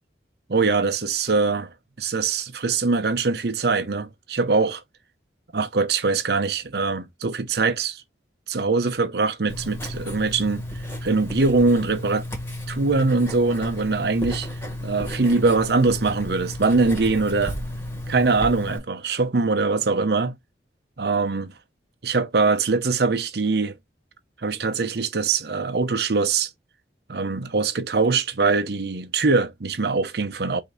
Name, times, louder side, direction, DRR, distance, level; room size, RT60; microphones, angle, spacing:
voice 1, 0.5-1.7 2.0-4.8 5.5-8.0 8.5-10.6 11.0-12.2 12.7-14.5 14.8-17.6 18.1-20.3 21.0-21.5 22.0-23.7 24.4-26.5 27.1-30.6, right 4 dB, 65° right, 0.7 m, -22 dB
Writing, 9.5-18.8, left 1 dB, 15° left, 1.5 m, -33 dB
5.1 x 2.7 x 3.8 m
head